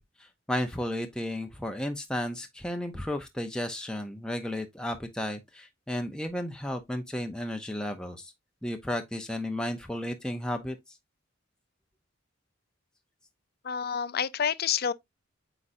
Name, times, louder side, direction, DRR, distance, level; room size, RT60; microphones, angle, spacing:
voice 1, 0.2-8.3 8.6-10.8, left 1 dB, 5° left, 0.6 m, -33 dB
voice 2, 13.6-14.9, left 7 dB, 50° left, 0.5 m, -28 dB
8.3 x 4.9 x 2.6 m
head